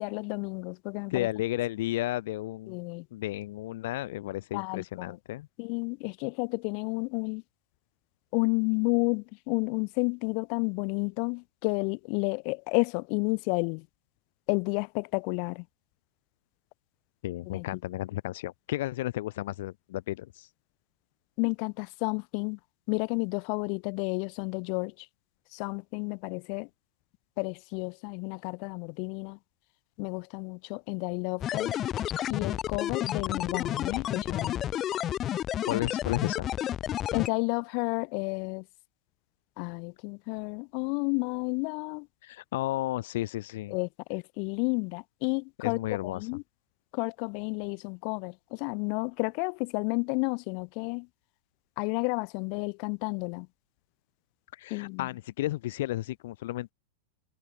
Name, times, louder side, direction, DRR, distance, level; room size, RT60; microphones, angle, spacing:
voice 1, 0.0-1.3 2.7-3.1 4.5-5.2 5.6-7.4 8.3-13.9 14.5-15.7 17.4-17.7 21.4-22.6 22.9-25.1 25.5-26.7 27.4-29.4 30.0-31.8 32.3-34.6 37.1-38.7 39.6-42.1 43.7-46.4 46.9-51.1 51.8-53.5 54.7-55.1, left 40 dB or more, 50° left, 1.5 m, -31 dB
voice 2, 1.1-2.8 3.1-5.5 17.2-20.5 35.7-36.5 42.2-43.7 45.6-46.2 54.5-56.7, left 16 dB, 70° left, 1.3 m, -33 dB
sound 1, 31.4-37.3, left 11 dB, 30° left, 4.3 m, -31 dB
supercardioid pair, 140°, 0 cm